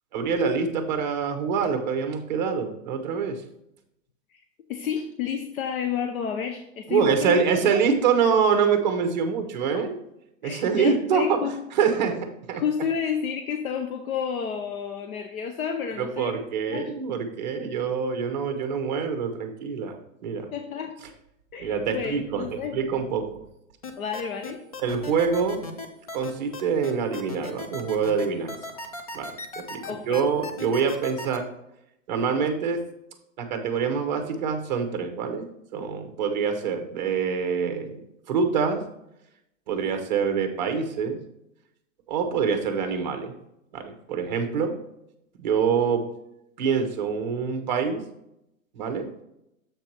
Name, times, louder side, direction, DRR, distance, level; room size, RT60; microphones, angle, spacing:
voice 1, 0.1-3.4 6.9-9.9 10.4-11.4 11.8-12.6 16.0-20.0 20.2-20.5 21.6-22.4 22.7-23.4 24.8-25.6 26.1-28.5 29.1-29.3 29.6-29.8 30.1-31.4 32.1-32.8 33.4-35.4 35.7-38.0 38.3-38.8 39.7-41.2 42.1-43.3 43.7-44.7 45.4-46.0 46.6-48.0 48.7-49.1, right 6 dB, 35° right, 6 dB, 0.9 m, -25 dB
voice 2, 4.3-7.4 7.7-7.8 9.7-9.8 10.4-11.6 12.5-16.3 16.7-17.0 20.5-21.0 21.5-22.8 24.0-24.6 29.9-30.3, left 7 dB, 85° left, 5 dB, 0.9 m, -31 dB
sound 1, 23.8-31.4, left 3 dB, 30° left, 0.4 m, -36 dB
7.3 x 4.6 x 4.4 m, 0.82 s
hypercardioid pair, 175°, 41 cm